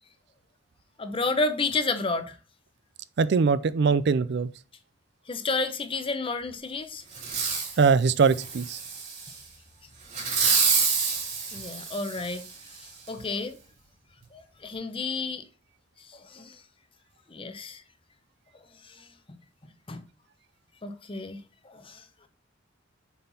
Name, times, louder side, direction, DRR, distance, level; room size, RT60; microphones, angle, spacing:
voice 1, 1.0-2.4 5.3-7.0 11.5-12.4 13.1-13.6 14.3-15.4 16.1-16.6 17.3-17.8 18.8-19.4 19.9-20.0 20.8-22.0, left 3 dB, 30° left, 0.7 m, -31 dB
voice 2, 3.2-4.5 7.8-8.8, right 5 dB, 60° right, 0.4 m, -22 dB
Fireworks, 7.1-7.8 8.3-9.3 10.1-12.5 13.1-13.2, right 5 dB, 40° right, 2.9 m, -27 dB
6.9 x 4.4 x 4.1 m
head